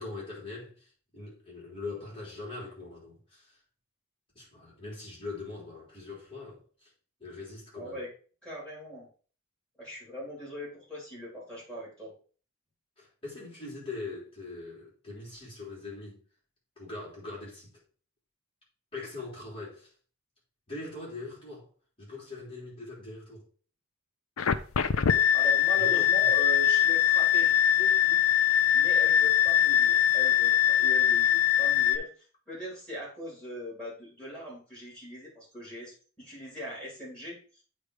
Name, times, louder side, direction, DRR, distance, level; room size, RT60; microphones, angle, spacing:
voice 1, 0.0-3.6 4.3-6.9 7.2-8.0 13.0-16.2 16.8-17.7 18.9-19.9 20.7-21.7 22.0-23.5 25.8-26.3, left 3 dB, 25° left, 3.3 m, -42 dB
voice 2, 7.7-8.1 8.4-9.1 9.8-12.1 25.3-28.2 28.7-30.5 30.8-37.6, right 1 dB, 5° left, 3.9 m, -40 dB
sound 1, 24.4-32.0, left 10 dB, 85° left, 0.5 m, -22 dB
8.5 x 3.2 x 4.8 m
head